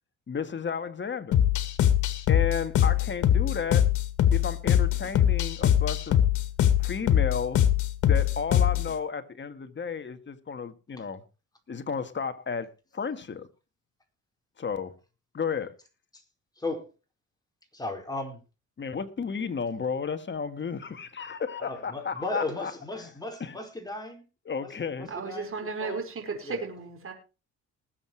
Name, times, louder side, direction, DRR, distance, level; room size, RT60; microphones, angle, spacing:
voice 1, 0.3-1.4 2.3-3.9 4.3-6.2 6.8-7.6 8.0-11.2 11.7-13.5 14.6-14.9 15.3-15.7 18.8-22.7 23.0-23.1 23.4-23.6 24.5-25.1, left 6 dB, 40° left, 1.8 m, -33 dB
sound 1, 1.3-8.9, left 10 dB, 80° left, 2.1 m, -22 dB
voice 2, 16.6-16.9 17.7-18.4 21.6-24.2 24.6-26.1 26.4-26.6, left 2 dB, 15° left, 4.9 m, -36 dB
voice 3, 25.1-26.0 26.3-27.1, right 4 dB, 45° right, 4.9 m, -34 dB
20.0 x 7.9 x 4.6 m
cardioid pair, 90°, 30 cm